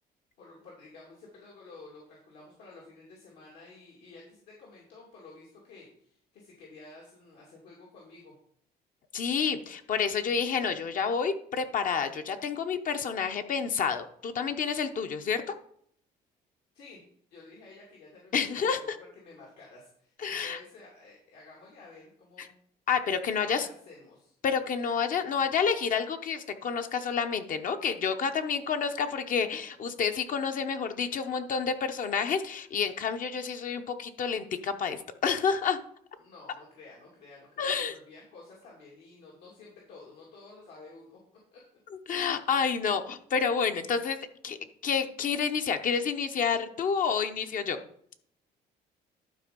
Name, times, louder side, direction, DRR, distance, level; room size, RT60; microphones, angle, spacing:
voice 1, 0.4-8.3 16.7-17.0 17.3-18.8 19.1-22.5 23.3-24.3 36.2-41.2 41.5-41.6, left 3 dB, 80° left, -4 dB, 2.6 m, -51 dB
voice 2, 9.1-15.6 18.3-19.0 20.2-20.6 22.4-22.5 22.9-23.7 24.4-35.8 37.6-37.9 42.1-44.2 44.4-44.6 44.8-47.8, left 6 dB, 50° left, 7 dB, 0.9 m, -29 dB
12.0 x 4.5 x 5.2 m, 0.66 s
cardioid pair, 110°, 17 cm